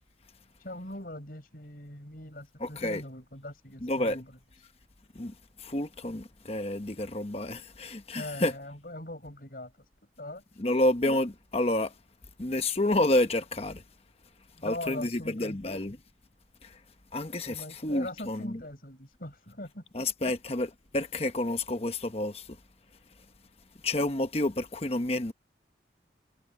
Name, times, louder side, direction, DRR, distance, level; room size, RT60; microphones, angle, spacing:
voice 1, 0.6-4.3 8.2-9.7 10.2-10.8 14.6-15.6 17.5-19.8, left 1 dB, 50° left, 6.6 m, -41 dB
voice 2, 2.6-3.0 3.8-4.2 5.1-5.3 5.6-8.5 10.6-11.9 12.4-13.8 14.6-16.0 17.1-18.6 19.9-22.4 23.8-25.3, left 1 dB, 35° left, 1.1 m, -29 dB
head